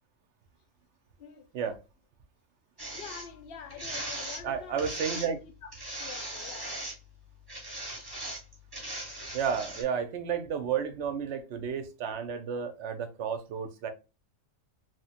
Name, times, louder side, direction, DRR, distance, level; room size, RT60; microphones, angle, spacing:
sound 1, 2.8-3.3 3.7-4.4 4.8-5.3 5.7-7.0 7.5-9.8, right 1 dB, 20° right, 1.0 m, -38 dB
voice 1, 2.9-5.3 5.6-5.7 6.0-6.7, left 7 dB, 60° left, 0.6 m, -46 dB
voice 2, 4.4-5.4 9.3-13.9, right 7 dB, 70° right, 0.8 m, -32 dB
3.0 x 2.1 x 2.7 m
omnidirectional pair, 1.4 m